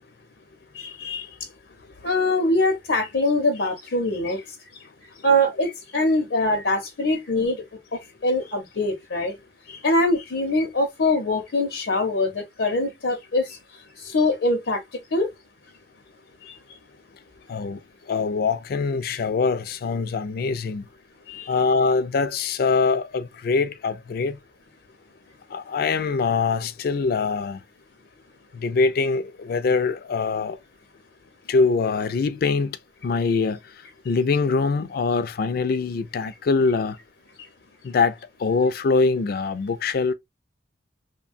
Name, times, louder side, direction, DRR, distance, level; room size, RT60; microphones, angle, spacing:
voice 1, 0.7-1.3 2.0-4.4 5.2-7.6 8.2-9.3 9.7-13.6 14.0-14.8 15.1-15.3 16.5-16.6 21.3-21.5, left 1 dB, 85° left, 0.7 m, -23 dB
voice 2, 17.5-17.8 18.1-20.9 21.5-24.4 25.5-27.6 28.5-30.6 31.5-32.8 33.0-33.6 34.0-37.0 37.8-40.1, left 4 dB, 55° left, 0.3 m, -23 dB
3.1 x 2.2 x 2.4 m
head